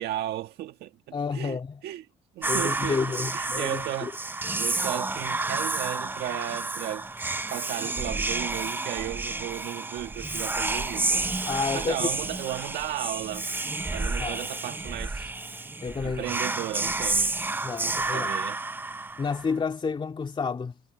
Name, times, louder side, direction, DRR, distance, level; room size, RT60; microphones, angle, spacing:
voice 1, 0.0-0.9 1.3-1.6 1.8-2.0 2.3-3.0 3.3-4.1 4.6-7.1 7.5-11.2 11.7-13.5 13.9-15.3 16.0-17.3 17.8-18.6, right 13 dB, 75° right, 1.6 m, -34 dB
voice 2, 1.1-1.8 2.4-4.1 11.5-12.1 14.2-14.5 15.8-16.3 17.6-18.3 19.2-20.7, left 5 dB, 30° left, 3.0 m, -30 dB
Whispering, 2.4-19.5, right 3 dB, 10° right, 0.6 m, -30 dB
cardioid pair, 110°, 17 cm